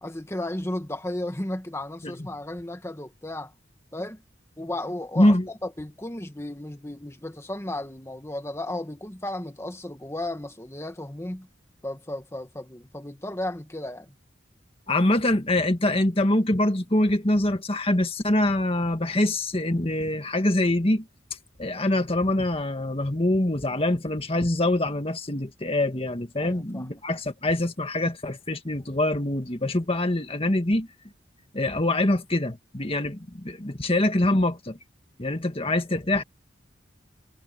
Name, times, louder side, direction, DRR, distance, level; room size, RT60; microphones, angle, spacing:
voice 1, 0.0-3.5 3.9-4.2 4.6-11.5 11.8-14.1 26.4-26.9, left 1 dB, 15° left, 1.5 m, -34 dB
voice 2, 5.2-5.5 14.9-21.1 21.6-30.9 31.5-34.8 35.2-36.2, left 1 dB, 30° left, 1.9 m, -24 dB
head